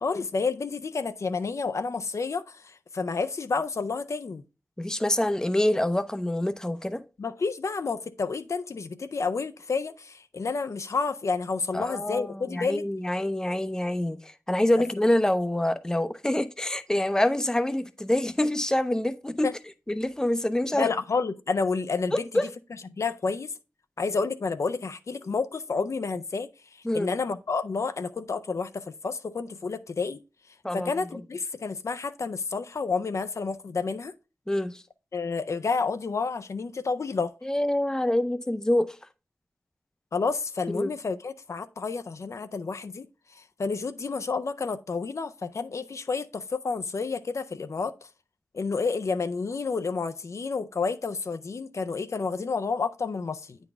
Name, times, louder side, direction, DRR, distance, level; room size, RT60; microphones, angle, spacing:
voice 1, 0.0-4.4 7.2-12.9 19.4-19.5 20.7-22.1 22.9-23.5 24.0-26.5 26.9-30.2 30.7-34.1 35.1-37.3 40.1-43.1 43.3-47.9 48.5-53.6, left 4 dB, 70° left, 0.4 m, -30 dB
voice 2, 4.8-7.0 11.7-19.5 19.9-20.9 22.1-22.4 26.8-27.1 30.6-30.9 34.5-34.8 37.4-39.0 40.7-40.9, left 1 dB, 10° left, 0.6 m, -26 dB
8.9 x 3.9 x 3.5 m
wide cardioid pair, 65°, 5 cm